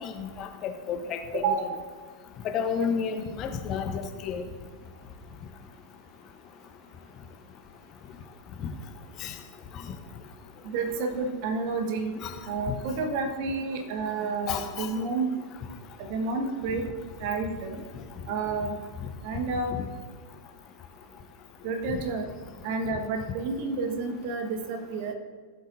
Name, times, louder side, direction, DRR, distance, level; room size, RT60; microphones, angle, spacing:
voice 1, 0.0-1.4 2.4-4.4 9.2-9.3 12.2-12.3 14.5-14.9 21.9-22.0, left 6 dB, 35° left, 6 dB, 0.9 m, -31 dB
voice 2, 10.6-12.2 12.5-15.3 16.1-16.9 17.2-17.8 18.3-18.8 19.2-19.7 21.6-22.3 22.6-25.1, right 4 dB, 45° right, 4 dB, 1.4 m, -30 dB
16.0 x 7.8 x 2.6 m, 1.5 s
figure-of-eight pair, 90°, 0 cm